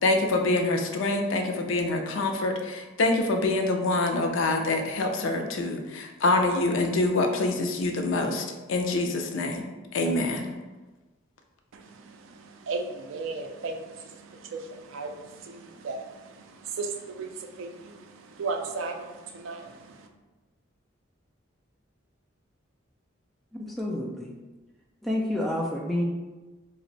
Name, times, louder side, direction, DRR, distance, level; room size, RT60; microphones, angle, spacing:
voice 1, 0.0-9.6 9.9-10.5, left 2 dB, 75° left, 4 dB, 0.4 m, -25 dB
voice 2, 11.7-20.1, right 3 dB, 80° right, 5 dB, 0.3 m, -36 dB
voice 3, 23.6-24.3 25.0-26.0, left 1 dB, ahead, -2 dB, 0.3 m, -29 dB
2.5 x 2.0 x 3.9 m, 1.2 s
head